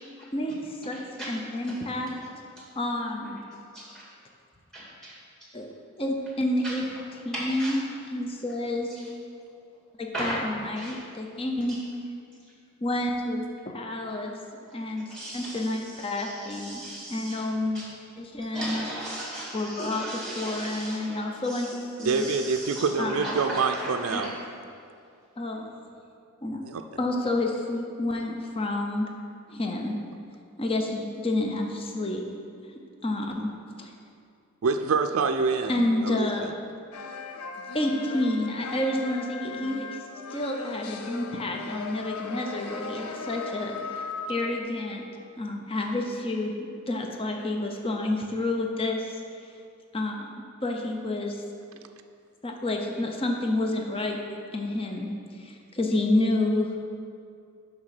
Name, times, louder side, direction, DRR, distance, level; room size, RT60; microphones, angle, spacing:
voice 1, 0.3-2.1 2.8-3.4 5.5-5.7 6.0-6.9 7.2-7.8 8.1-8.9 10.0-11.8 12.8-14.3 14.7-15.1 15.3-16.8 17.1-17.9 18.2-18.9 19.5-20.0 20.4-22.2 23.0-23.3 24.1-24.2 25.4-25.7 26.4-26.6 27.0-29.1 29.5-29.9 30.6-32.2 32.7-33.5 33.8-33.9 35.7-36.5 37.7-39.9 40.3-45.1 45.4-46.5 46.9-49.1 49.9-50.3 50.6-51.4 52.4-54.2 54.5-56.8, left 1 dB, 25° left, 2 dB, 0.6 m, -29 dB
voice 2, 0.9-1.3 1.7-1.8 3.7-4.1 4.7-5.2 6.6-6.8 7.3-7.8 9.0-9.1 10.1-10.5 10.8-11.0 11.7-11.8 15.1-17.4 17.7-17.8 18.4-21.7 22.0-24.3, right 1 dB, 5° left, -6 dB, 2.1 m, -37 dB
voice 3, 22.0-24.3 26.6-26.8 34.6-36.5, right 4 dB, 65° right, 7 dB, 0.4 m, -26 dB
sound 1, 36.9-44.6, left 4 dB, 80° left, 0.5 m, -37 dB
6.2 x 5.9 x 5.8 m, 2.3 s
head